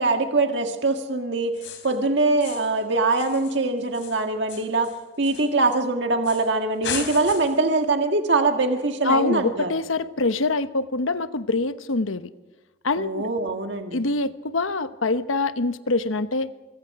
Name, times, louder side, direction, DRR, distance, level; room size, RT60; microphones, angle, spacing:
voice 1, 0.0-1.5 1.8-4.9 5.2-9.7 13.0-14.0, right 3 dB, 60° right, 4 dB, 1.8 m, -23 dB
sound 1, 1.5-2.0 2.4-2.8 3.1-5.8 6.2-6.5 6.8-7.7, left 7 dB, 70° left, 3.5 m, -36 dB
voice 2, 9.0-12.3 12.8-13.3 13.9-16.5, left 3 dB, 85° left, 12 dB, 1.1 m, -24 dB
24.5 x 23.5 x 4.8 m, 1.2 s
head